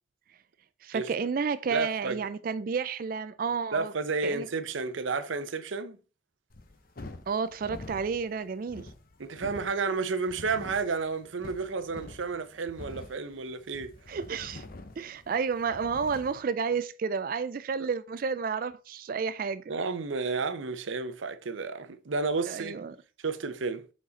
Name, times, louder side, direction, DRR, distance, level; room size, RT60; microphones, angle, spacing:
voice 1, 0.8-3.9 4.2-4.5 7.3-8.9 14.1-14.6 15.0-19.7 22.5-23.0, right 5 dB, 45° right, 0.3 m, -31 dB
voice 2, 1.7-2.2 3.7-6.0 9.2-13.9 19.7-22.8 23.2-23.8, right 4 dB, 85° right, 0.7 m, -31 dB
sound 1, 6.5-16.4, left 2 dB, 50° left, 0.8 m, -46 dB
7.3 x 4.2 x 4.0 m
head